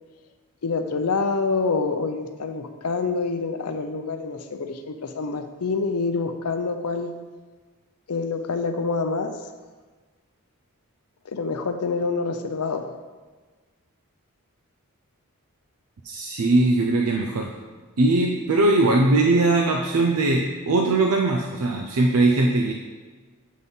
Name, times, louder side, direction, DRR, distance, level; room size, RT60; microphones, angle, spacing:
voice 1, 0.6-7.2 8.1-9.4 11.2-12.9, left 4 dB, 85° left, 7 dB, 0.6 m, -26 dB
voice 2, 16.0-17.5 18.0-22.7, right 2 dB, 75° right, 2 dB, 0.6 m, -20 dB
7.5 x 4.1 x 5.3 m, 1.4 s
head